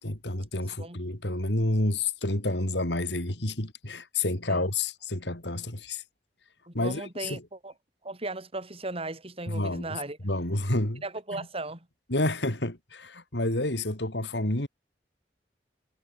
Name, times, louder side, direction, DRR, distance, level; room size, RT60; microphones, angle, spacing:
voice 1, 0.0-6.0 6.7-7.4 9.5-11.0 12.1-14.7, left 2 dB, 75° left, 4.3 m, -29 dB
voice 2, 6.7-7.7 8.0-10.2 11.0-11.9, right 2 dB, 35° right, 7.0 m, -36 dB
head